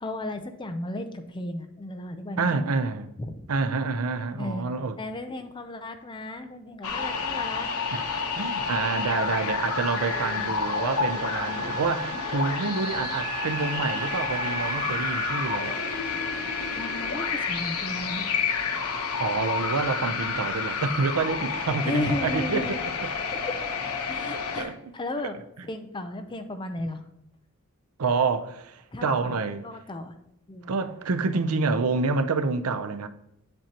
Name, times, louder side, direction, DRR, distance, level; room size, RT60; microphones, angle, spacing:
voice 1, 0.0-2.7 3.2-3.5 4.4-4.7 5.0-7.7 10.1-10.5 16.7-18.3 21.8-22.8 23.3-23.5 24.1-25.4 25.7-27.0 28.9-29.3 29.6-30.1 30.5-30.7, left 1 dB, 20° left, 0.6 m, -34 dB
voice 2, 2.4-3.1 3.5-5.0 7.9-8.0 8.4-15.8 19.2-23.1 24.3-24.9 28.0-29.7 30.7-33.1, right 4 dB, 85° right, 0.6 m, -28 dB
sound 1, 6.8-24.6, left 5 dB, 85° left, 1.0 m, -30 dB
Wind instrument woodwind instrument, 9.7-18.0, right 6 dB, 70° left, 2.2 m, -38 dB
sound 2, 15.6-19.7, equal, 60° right, 2.8 m, -46 dB
7.7 x 7.5 x 2.9 m
head